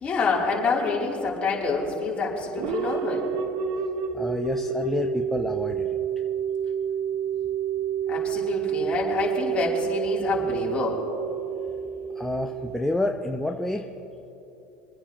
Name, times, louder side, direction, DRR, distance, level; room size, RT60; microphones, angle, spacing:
voice 1, 0.0-3.3 8.1-11.0, left 4 dB, 30° left, -4 dB, 3.2 m, -27 dB
sound 1, 2.6-13.3, right 8 dB, 60° right, 0.9 m, -29 dB
voice 2, 4.1-5.9 12.2-13.9, left 2 dB, 5° left, 2 dB, 0.7 m, -28 dB
25.5 x 9.7 x 3.0 m, 3.0 s
supercardioid pair, 115°, 4 cm